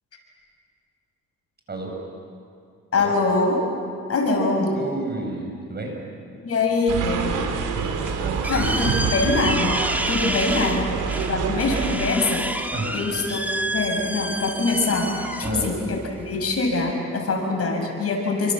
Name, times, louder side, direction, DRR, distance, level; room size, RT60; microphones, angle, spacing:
voice 1, 2.9-3.6 4.1-4.7 6.4-7.3 8.5-10.8 11.3-13.4 13.7-18.5, left 3 dB, 50° left, 2 dB, 6.7 m, -24 dB
voice 2, 4.7-5.9 8.2-8.9 12.7-13.0 15.4-15.7, right 2 dB, 35° right, 1 dB, 7.4 m, -31 dB
sound 1, 6.9-12.0, right 6 dB, 90° right, 3.2 m, -27 dB
sound 2, 7.8-16.9, right 1 dB, 5° right, 2.0 m, -30 dB
29.0 x 25.5 x 7.6 m, 2.3 s
cardioid pair, 90°, 30 cm